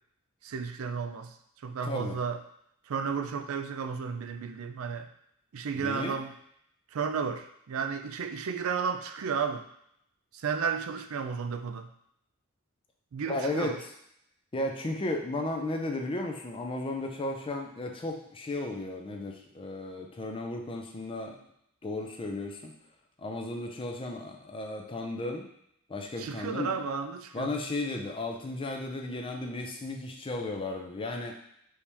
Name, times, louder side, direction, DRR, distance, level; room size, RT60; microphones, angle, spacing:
voice 1, 0.4-1.3 1.6-2.4 2.9-5.1 5.5-6.3 6.9-9.7 10.3-11.9 13.1-13.8 26.2-27.5, right 6 dB, 70° right, 8 dB, 0.4 m, -33 dB
voice 2, 1.8-2.2 5.8-6.2 13.3-13.8 14.5-21.4 21.8-22.7 23.2-25.5 25.9-26.7 27.3-31.3, left 2 dB, 25° left, 2 dB, 0.5 m, -34 dB
4.7 x 2.8 x 3.4 m, 0.73 s
head